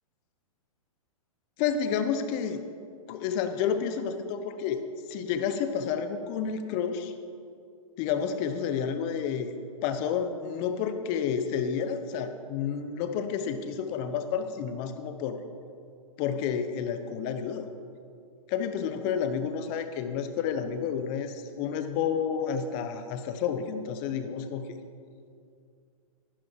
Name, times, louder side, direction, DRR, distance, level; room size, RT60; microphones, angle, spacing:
voice 1, 1.6-2.6 3.1-4.8 5.1-7.1 8.0-9.5 9.8-15.4 16.2-17.7 18.5-24.8, left 7 dB, 40° left, 9 dB, 1.0 m, -30 dB
11.0 x 10.5 x 4.6 m, 2.4 s
hypercardioid pair, 125°, 18 cm